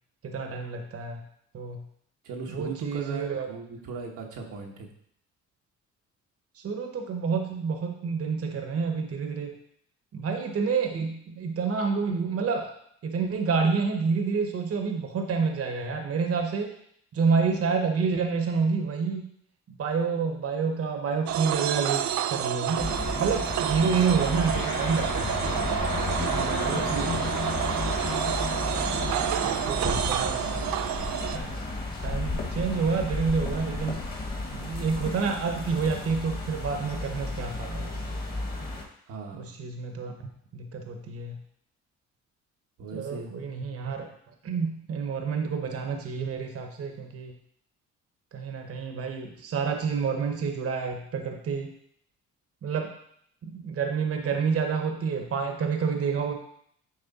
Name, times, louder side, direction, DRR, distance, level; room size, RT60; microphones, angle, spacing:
voice 1, 0.2-1.2 1.5-1.9 2.5-3.5 6.6-9.5 10.1-12.7 13.0-16.7 17.1-19.3 19.8-22.9 23.2-25.7 26.4-27.2 29.4-30.7 31.3-31.6 32.0-34.0 34.5-38.1 39.3-40.1 40.5-41.4 42.9-44.1 44.4-47.3 48.3-51.7 52.6-52.9 53.4-56.3, right 5 dB, 50° right, 4 dB, 1.0 m, -28 dB
voice 2, 2.2-4.9 26.1-27.2 27.5-27.8 29.4-29.8 39.1-39.5 42.8-43.3, right 4 dB, 85° right, 0 dB, 1.2 m, -38 dB
sound 1, 21.3-31.4, right 11 dB, 70° right, 0.5 m, -29 dB
sound 2, 22.8-38.8, left 3 dB, 30° left, 1.5 m, -32 dB
9.5 x 3.3 x 4.1 m, 0.69 s
cardioid pair, 90°, 30 cm